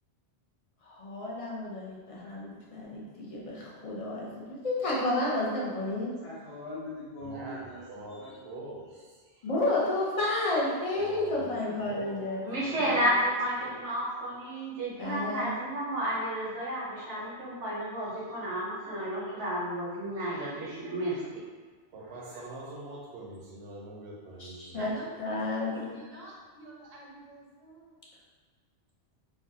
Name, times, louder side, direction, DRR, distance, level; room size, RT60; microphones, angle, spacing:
voice 1, 0.8-6.1 9.4-12.4 15.0-15.5 24.4-24.9 25.2-26.0, left 2 dB, 40° left, -5 dB, 0.5 m, -31 dB
voice 2, 6.2-8.5 11.2-12.2, left 1 dB, 60° left, -11 dB, 1.0 m, -43 dB
voice 3, 7.2-9.5 10.9-11.5 11.8-12.3 21.9-25.0 25.7-26.2, right 2 dB, 70° right, -3 dB, 0.9 m, -44 dB
voice 4, 12.4-21.4, equal, 85° right, -7 dB, 1.2 m, -31 dB
voice 5, 24.8-27.9, right 1 dB, 40° right, -5 dB, 0.7 m, -47 dB
3.4 x 2.2 x 2.6 m, 1.4 s
omnidirectional pair, 1.2 m